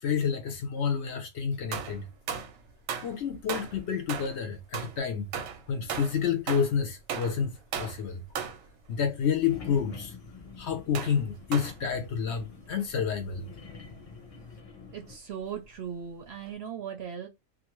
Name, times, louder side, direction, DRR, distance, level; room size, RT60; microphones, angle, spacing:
voice 1, 0.0-2.1 3.0-5.3 5.7-8.2 8.9-13.7, left 7 dB, 65° left, 0.8 m, -29 dB
sound 1, 1.7-2.6 2.9-3.2 3.5-4.4 4.7-6.8 7.1-7.4 7.7-8.0 8.4-8.7 9.3-9.5 10.9-11.2 11.5-11.9 12.8-12.9 13.1-13.2 16.5-16.6, right 7 dB, 90° right, 1.0 m, -36 dB
sound 2, 9.5-15.2, left 5 dB, 45° left, 0.5 m, -47 dB
voice 2, 14.9-17.3, right 8 dB, 65° right, 0.7 m, -38 dB
2.5 x 2.5 x 2.9 m
omnidirectional pair, 1.4 m